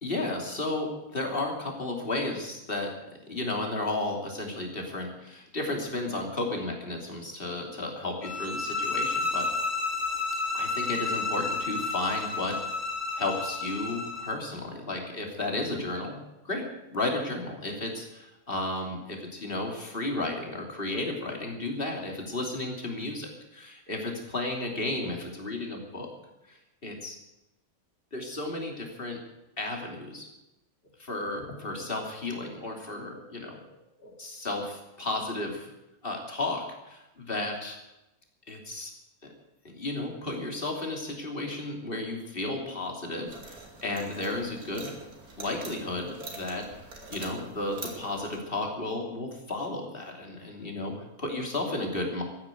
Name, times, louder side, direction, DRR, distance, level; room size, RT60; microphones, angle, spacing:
voice 1, 0.0-2.9 3.3-9.5 10.5-12.6 13.2-26.1 26.5-27.2 28.1-29.2 29.6-30.3 31.0-33.6 34.0-35.7 36.0-37.8 38.5-38.9 39.2-39.3 39.6-45.0 45.4-46.7 47.1-52.2, left 2 dB, 35° left, 2 dB, 3.2 m, -33 dB
sound 1, 8.2-14.4, left 3 dB, 80° left, 2.7 m, -31 dB
sound 2, 43.3-48.4, right 3 dB, 80° right, 3.2 m, -44 dB
14.0 x 9.9 x 9.2 m, 0.95 s
omnidirectional pair, 1.6 m